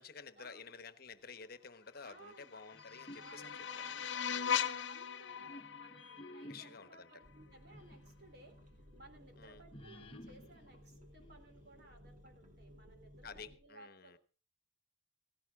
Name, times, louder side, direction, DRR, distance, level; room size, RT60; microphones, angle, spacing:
voice 1, 0.0-4.7 6.5-7.1 9.4-9.6 13.2-14.2, left 5 dB, 55° left, 11 dB, 1.2 m, -52 dB
voice 2, 2.0-2.6 3.1-8.6 9.0-14.2, right 2 dB, 60° right, 5 dB, 3.7 m, -60 dB
sound 1, 2.2-7.3, left 8 dB, 75° left, 0.9 m, -40 dB
sound 2, 2.7-4.6 5.2-8.1 8.5-8.6 9.7-11.8, left 1 dB, 30° left, 1.1 m, -55 dB
sound 3, 7.2-13.6, equal, 40° right, 2.9 m, -59 dB
17.0 x 16.0 x 3.7 m, 0.36 s
head